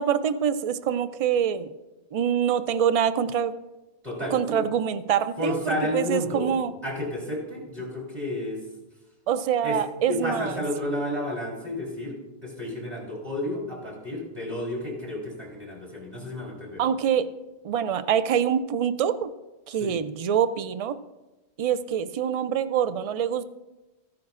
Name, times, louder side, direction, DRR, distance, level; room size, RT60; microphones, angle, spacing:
voice 1, 0.0-1.7 2.1-3.5 4.3-6.7 9.3-10.6 16.8-17.3 17.6-19.3 19.7-21.0 21.6-23.4, right 8 dB, 70° right, 13 dB, 0.3 m, -25 dB
voice 2, 4.0-4.6 5.4-6.5 6.8-8.6 9.6-9.8 10.1-16.8 19.8-20.0, left 1 dB, 40° right, -3 dB, 3.8 m, -31 dB
15.0 x 10.5 x 2.5 m, 1.0 s
omnidirectional pair, 1.1 m